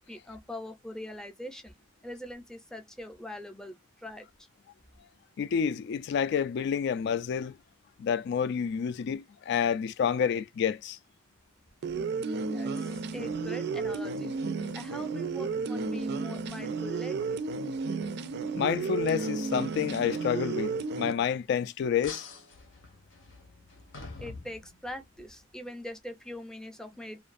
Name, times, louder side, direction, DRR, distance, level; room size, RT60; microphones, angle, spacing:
voice 1, 0.1-1.8 2.0-4.5 12.4-14.4 14.7-17.4 24.2-27.2, left 1 dB, 5° left, 0.5 m, -42 dB
voice 2, 5.4-7.5 8.0-11.0 18.6-22.3, left 7 dB, 60° left, 0.3 m, -29 dB
sound 1, 11.8-21.1, right 4 dB, 60° right, 0.4 m, -33 dB
sound 2, 22.0-25.2, left 3 dB, 85° left, 0.9 m, -46 dB
2.6 x 2.3 x 2.5 m
head